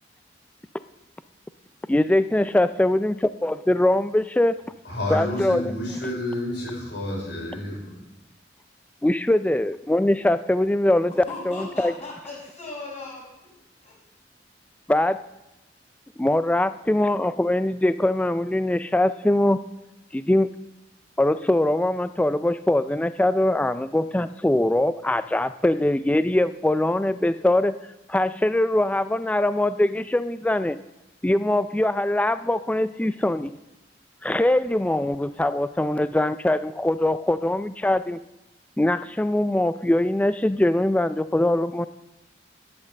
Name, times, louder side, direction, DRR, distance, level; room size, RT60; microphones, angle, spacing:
voice 1, 1.9-4.6 5.1-5.7 9.0-11.9 14.9-15.2 16.2-19.6 20.1-20.5 21.2-27.8 28.1-30.8 31.2-33.6 34.2-38.2 38.8-41.9, left 1 dB, 10° left, 13 dB, 0.3 m, -22 dB
voice 2, 4.9-8.0, left 1 dB, 75° left, -2 dB, 5.4 m, -30 dB
voice 3, 11.3-13.3 13.8-13.9, left 3 dB, 40° left, -10 dB, 4.7 m, -37 dB
10.5 x 8.5 x 7.5 m, 0.97 s
head